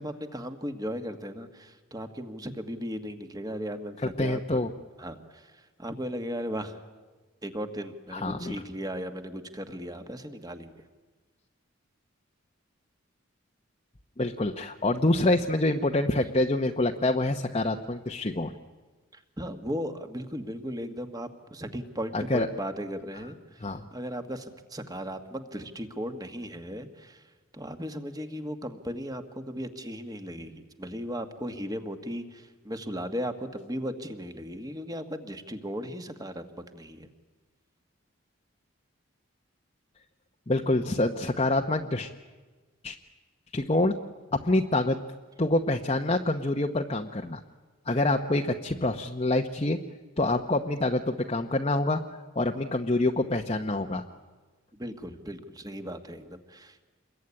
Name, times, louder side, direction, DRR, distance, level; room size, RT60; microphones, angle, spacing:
voice 1, 0.0-4.6 5.0-5.5 5.8-6.8 7.4-10.7 19.1-27.2 27.5-37.1 54.8-56.9, equal, 20° right, 8 dB, 1.7 m, -36 dB
voice 2, 4.2-4.7 8.1-8.6 14.2-18.5 22.1-22.5 23.6-23.8 40.5-42.1 42.8-42.9 43.5-43.9 44.3-45.0 45.4-47.4 47.9-49.8 50.2-52.0 52.4-54.0, left 2 dB, 30° left, 2 dB, 0.9 m, -26 dB
27.5 x 22.0 x 9.8 m, 1.3 s
head